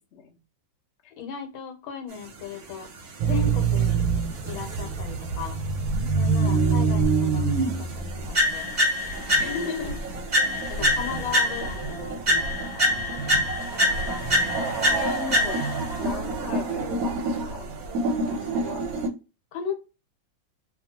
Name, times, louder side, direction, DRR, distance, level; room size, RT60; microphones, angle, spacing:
voice 1, 1.1-2.9 3.2-4.0 4.4-5.6 6.1-8.7 9.3-10.0 10.4-12.6 19.5-19.8, left 6 dB, 85° left, 5 dB, 1.5 m, -36 dB
sound 1, 2.1-19.1, right 2 dB, 60° right, 0.9 m, -32 dB
sound 2, 3.2-8.2, right 5 dB, 85° right, 1.4 m, -24 dB
voice 2, 6.4-7.5 9.5-10.3 14.0-15.6 16.0-17.7 18.1-18.9, left 5 dB, 60° left, 0 dB, 0.7 m, -40 dB
sound 3, 8.3-9.8 10.3-11.9 12.3-15.9, left 1 dB, 35° right, 0.9 m, -25 dB
3.0 x 2.4 x 2.7 m, 0.30 s
omnidirectional pair, 2.2 m